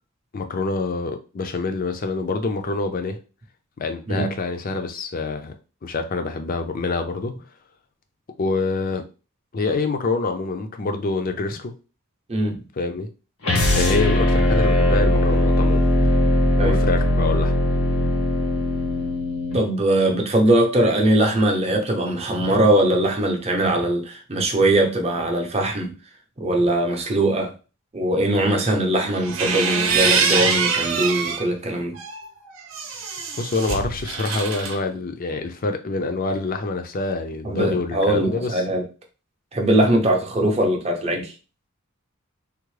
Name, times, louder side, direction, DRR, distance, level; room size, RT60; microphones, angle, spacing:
voice 1, 0.3-3.2 3.8-5.5 5.8-7.3 8.4-9.0 9.5-11.7 12.8-13.1 13.7-15.8 16.6-17.5 33.4-38.6, left 3 dB, 40° left, 0.4 m, -26 dB
voice 2, 12.3-12.6 16.6-16.8 19.5-25.9 26.4-27.5 27.9-32.0 37.4-38.8 39.5-41.3, right 1 dB, 30° right, 0.6 m, -21 dB
sound 1, 13.4-19.6, left 1 dB, 85° left, 1.0 m, -19 dB
sound 2, 29.1-31.5 32.0-34.8, right 5 dB, 70° right, 0.7 m, -24 dB
3.5 x 2.0 x 3.1 m
head